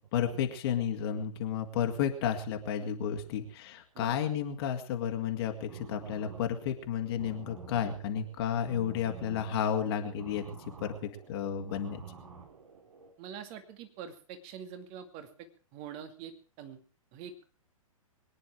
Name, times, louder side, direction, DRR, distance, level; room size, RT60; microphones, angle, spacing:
voice 1, 0.1-10.5 10.8-12.0, left 8 dB, 45° left, 4 dB, 2.1 m, -32 dB
sound 1, 5.5-13.1, right 5 dB, 70° right, 4.2 m, -50 dB
voice 2, 13.2-16.8 17.1-17.4, right 8 dB, 35° right, 8 dB, 2.3 m, -45 dB
23.0 x 10.0 x 4.7 m, 0.39 s
figure-of-eight pair, 115°, 18 cm